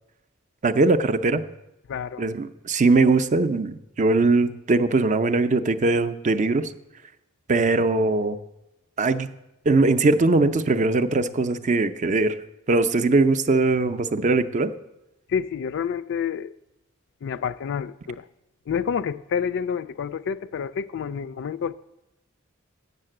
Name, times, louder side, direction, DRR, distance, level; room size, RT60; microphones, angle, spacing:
voice 1, 0.6-1.4 2.2-6.7 7.5-8.4 9.0-9.3 9.7-12.4 12.7-14.7, right 3 dB, 35° right, 0.5 m, -21 dB
voice 2, 1.9-2.3 15.3-16.5 17.2-18.3 18.7-21.7, left 7 dB, 60° left, 0.4 m, -28 dB
8.3 x 6.5 x 7.7 m
head